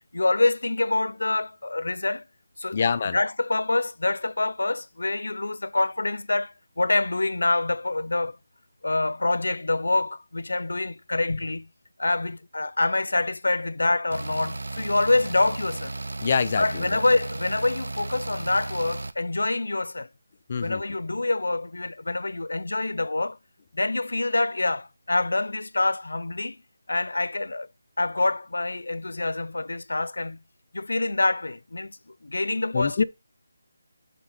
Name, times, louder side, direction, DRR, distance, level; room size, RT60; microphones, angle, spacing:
voice 1, 0.1-2.2 2.6-2.8 3.1-8.4 8.8-11.7 12.0-15.9 16.6-20.1 20.6-23.4 23.7-26.6 26.9-27.7 28.0-30.4 30.7-32.0 32.2-33.0, left 2 dB, 90° left, 0.4 m, -26 dB
voice 2, 2.7-3.2 16.2-17.0 20.5-20.8 32.7-33.0, left 5 dB, 35° left, 0.5 m, -25 dB
sound 1, 14.1-19.1, right 2 dB, 85° right, 0.7 m, -34 dB
8.2 x 3.4 x 5.8 m
figure-of-eight pair, 170°, 0 cm